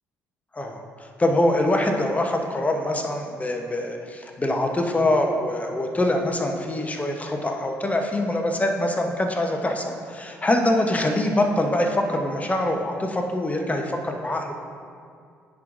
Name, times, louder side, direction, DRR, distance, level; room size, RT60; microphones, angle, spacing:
voice 1, 1.2-14.5, left 1 dB, 20° left, 3 dB, 0.9 m, -24 dB
10.5 x 4.7 x 2.6 m, 2.2 s
hypercardioid pair, 50°, 7 cm